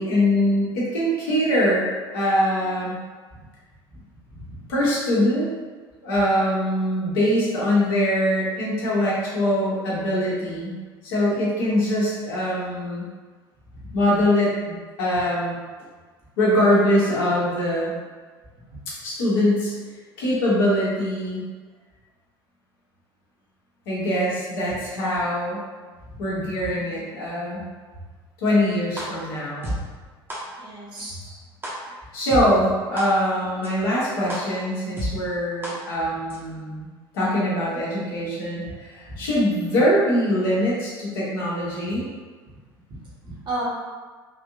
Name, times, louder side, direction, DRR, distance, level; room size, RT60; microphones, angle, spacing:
voice 1, 0.0-1.8 2.1-2.9 4.7-5.5 6.0-10.8 11.0-13.0 13.9-15.6 16.4-17.9 18.9-19.7 20.2-21.4 23.9-25.6 26.2-27.7 28.4-29.8 31.0-31.4 32.1-36.9 37.1-42.0, equal, 65° left, -7 dB, 1.1 m, -23 dB
sound 1, 29.0-29.1 29.6-29.7 30.3-30.4 31.0-31.1 31.6-31.7 32.3-32.4 33.0-33.1 33.6-33.7 34.3-34.4 35.0-35.1 35.6-35.7 36.3-36.4, equal, 15° right, 0.9 m, -29 dB
voice 2, 30.6-31.2 38.6-38.7 39.0-39.2 42.9-43.6, right 2 dB, 35° right, -6 dB, 1.2 m, -35 dB
3.5 x 2.7 x 2.6 m, 1.4 s
figure-of-eight pair, 65°, 13 cm